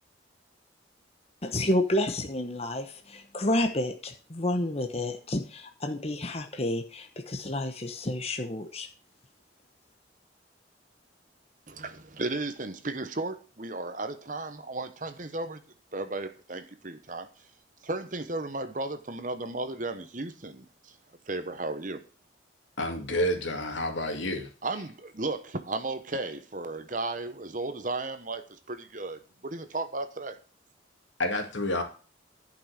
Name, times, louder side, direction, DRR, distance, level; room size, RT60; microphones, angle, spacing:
voice 1, 1.4-8.9, left 1 dB, 30° left, 5 dB, 1.0 m, -30 dB
voice 2, 11.7-15.6 15.9-17.3 17.8-20.9 21.3-22.0 24.6-30.4, right 2 dB, 40° right, 10 dB, 1.0 m, -34 dB
voice 3, 22.8-24.5 31.2-31.8, left 1 dB, 75° left, 4 dB, 2.4 m, -29 dB
11.0 x 6.0 x 6.5 m, 0.36 s
head